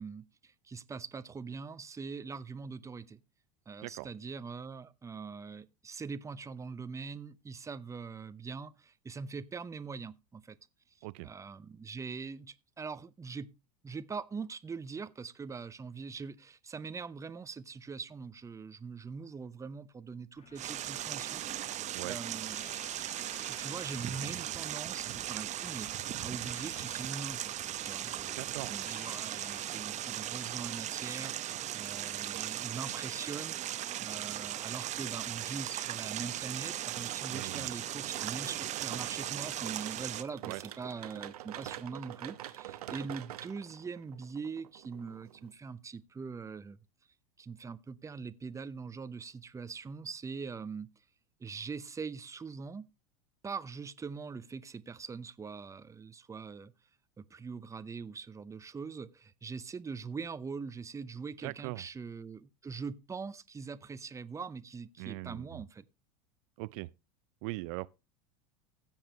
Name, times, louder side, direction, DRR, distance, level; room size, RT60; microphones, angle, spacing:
voice 1, 0.0-3.2 3.7-10.6 11.0-13.5 13.8-21.8 22.0-22.7 23.5-27.5 27.8-33.7 34.0-46.8 47.4-50.9 51.4-52.9 53.4-56.7 57.2-65.9, right 5 dB, 15° right, 0.7 m, -42 dB
sound 1, 20.3-30.8, left 6 dB, 35° left, 1.7 m, -56 dB
sound 2, 20.6-40.2, right 12 dB, 40° right, 0.8 m, -38 dB
voice 2, 28.4-28.7 37.3-37.7 40.4-40.6 61.4-61.8 65.0-65.6 66.6-66.9 67.4-67.9, right 23 dB, 65° right, 0.4 m, -40 dB
sound 3, 36.8-45.5, right 13 dB, 80° right, 1.0 m, -46 dB
16.0 x 7.3 x 3.0 m
hypercardioid pair, 95°, 19 cm